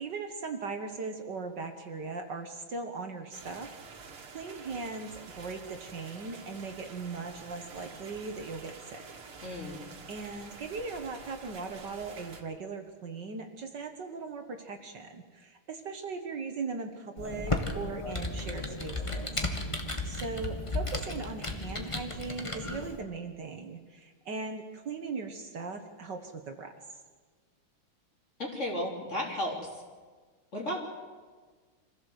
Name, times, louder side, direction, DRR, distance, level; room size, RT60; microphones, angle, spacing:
voice 1, 0.0-9.0 9.7-19.4 20.0-26.7, right 4 dB, 55° right, 6 dB, 1.9 m, -39 dB
sound 1, 3.3-12.4, right 4 dB, 90° right, 2.9 m, -48 dB
voice 2, 9.4-9.8 28.4-29.8 30.5-30.8, left 1 dB, 35° left, -1 dB, 3.8 m, -34 dB
Computer keyboard, 17.2-23.0, left 2 dB, 15° left, 1.7 m, -34 dB
25.5 x 15.5 x 8.0 m, 1.5 s
omnidirectional pair, 2.3 m